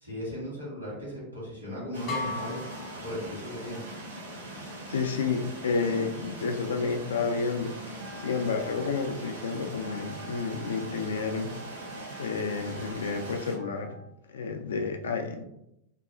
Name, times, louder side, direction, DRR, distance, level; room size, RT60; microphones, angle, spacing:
voice 1, 0.0-2.6 3.0-3.8, equal, 85° right, -5 dB, 1.3 m, -36 dB
sound 1, 1.9-13.6, right 1 dB, 70° right, 0.7 m, -41 dB
sound 2, 2.1-3.9, left 3 dB, 40° left, 0.8 m, -37 dB
voice 2, 4.9-11.5 12.2-14.0 14.3-15.4, left 4 dB, 65° left, 5 dB, 0.3 m, -30 dB
Wind instrument woodwind instrument, 8.0-14.1, right 2 dB, 30° right, 0.3 m, -48 dB
2.6 x 2.3 x 2.4 m, 0.83 s
figure-of-eight pair, 90°, 0 cm